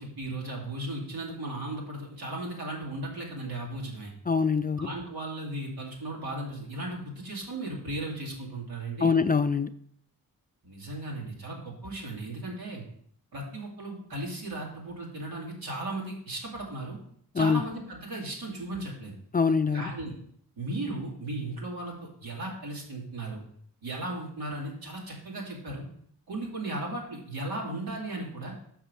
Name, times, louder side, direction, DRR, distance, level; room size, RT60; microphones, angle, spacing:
voice 1, 0.0-4.1 4.8-9.1 10.6-12.8 13.3-17.0 17.3-19.2 19.7-20.1 20.6-23.4 23.8-25.8 26.3-28.5, right 2 dB, 85° right, -3 dB, 2.6 m, -36 dB
voice 2, 4.3-4.9 9.0-9.7 17.3-17.6 19.3-19.9, left 5 dB, 25° left, 11 dB, 0.4 m, -24 dB
6.1 x 6.0 x 5.4 m, 0.64 s
cardioid pair, 75°, 35 cm